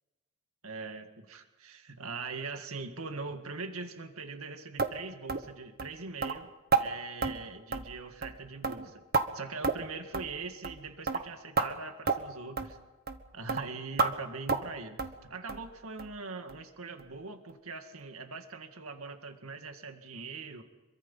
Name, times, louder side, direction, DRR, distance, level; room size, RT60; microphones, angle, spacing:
voice 1, 0.6-6.5 6.8-9.0 9.3-12.8 13.3-20.6, right 4 dB, 80° right, 6 dB, 2.0 m, -42 dB
sound 1, 4.8-4.9 5.3-5.5 5.8-5.9 6.2-6.4 6.7-6.9 7.2-7.4 7.7-8.0 8.2-8.4 8.6-9.3 9.6-9.9 10.1-10.3 10.6-10.8 11.1-11.2 11.6-11.7 12.1-12.2 12.6-12.7 13.1-13.2 13.5-13.6 14.0-14.1 14.5-14.7 15.0-15.2 15.5-15.7 16.0-16.1 16.5-16.6 17.0-17.1, right 4 dB, 45° right, 1.4 m, -29 dB
26.5 x 23.5 x 5.6 m, 1.2 s
head